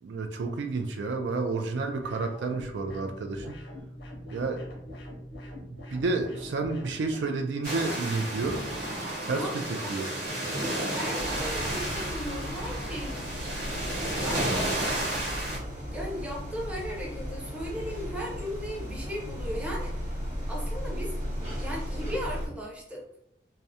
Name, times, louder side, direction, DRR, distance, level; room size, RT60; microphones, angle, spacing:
voice 1, 0.0-3.6 4.3-4.6 5.7-8.6 9.2-9.5 9.9-10.1, right 3 dB, 80° right, 6 dB, 0.3 m, -30 dB
sound 1, 2.0-7.3, equal, 75° left, 0.6 m, -43 dB
sound 2, 7.6-15.6, right 1 dB, 60° right, 1.0 m, -32 dB
voice 2, 9.2-10.0 10.6-13.3 14.2-14.7 15.9-19.9 20.5-21.1 21.6-23.0, equal, 5° right, -4 dB, 0.6 m, -36 dB
sound 3, 11.2-22.5, equal, 40° right, 1.0 m, -36 dB
2.4 x 2.0 x 2.7 m, 0.75 s
head